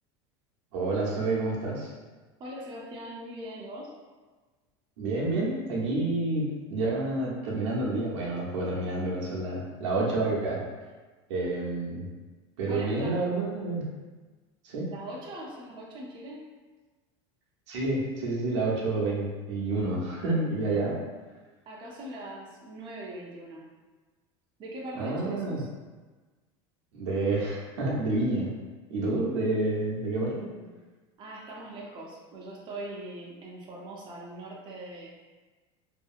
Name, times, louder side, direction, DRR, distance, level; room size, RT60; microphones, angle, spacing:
voice 1, 0.7-1.9 5.0-10.6 11.3-12.1 12.6-13.9 14.6-14.9 17.7-21.0 24.9-25.6 26.9-28.5 28.9-30.5, right 2 dB, 90° right, -4 dB, 0.7 m, -29 dB
voice 2, 2.4-3.9 12.7-13.2 14.9-16.5 21.7-23.7 24.6-25.7 30.3-30.7 31.2-35.1, right 1 dB, 35° right, -3 dB, 0.6 m, -41 dB
2.7 x 2.5 x 2.4 m, 1.3 s
supercardioid pair, 115°, 15 cm